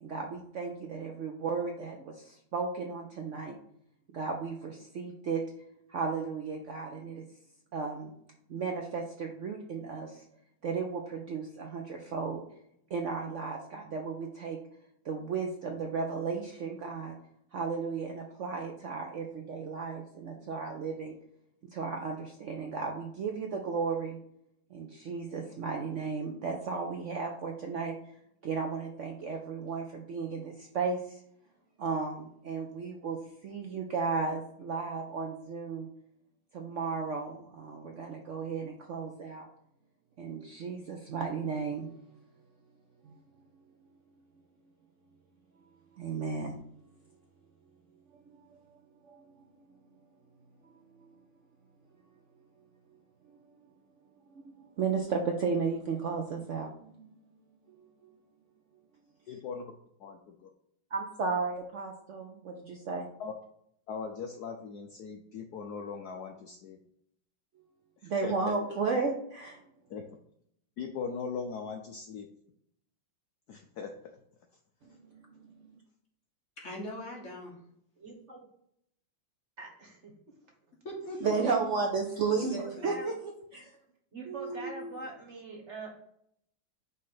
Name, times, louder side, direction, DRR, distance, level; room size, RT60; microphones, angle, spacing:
voice 1, 0.0-3.6 4.1-5.4 5.9-7.2 7.7-8.1 8.5-10.2 10.6-12.4 12.9-14.6 15.0-17.2 17.5-21.2 21.7-24.2 24.7-28.1 28.4-31.2 31.8-35.9 36.5-39.5 40.2-41.9 43.0-43.2 45.9-46.6 48.5-48.6 49.0-49.8 50.6-50.7 51.0-51.1 54.3-57.1 57.8-58.1 60.9-63.1 68.0-69.6 74.8-75.7 81.2-82.6 82.8-83.7 84.3-85.0, right 5 dB, 85° right, 2 dB, 0.6 m, -34 dB
voice 2, 59.3-59.7 60.0-60.2 63.2-63.3 63.9-66.8 68.0-68.5 69.9-70.0 70.8-72.3 73.5-74.2, left 5 dB, 70° left, 4 dB, 0.9 m, -39 dB
voice 3, 76.6-77.6 80.8-81.5 82.5-82.9, equal, 40° left, -2 dB, 1.8 m, -40 dB
voice 4, 78.0-78.4 79.6-80.1 82.2-83.1 84.1-85.9, right 2 dB, 40° right, 0 dB, 1.4 m, -43 dB
5.5 x 3.2 x 5.6 m, 0.72 s
omnidirectional pair, 2.1 m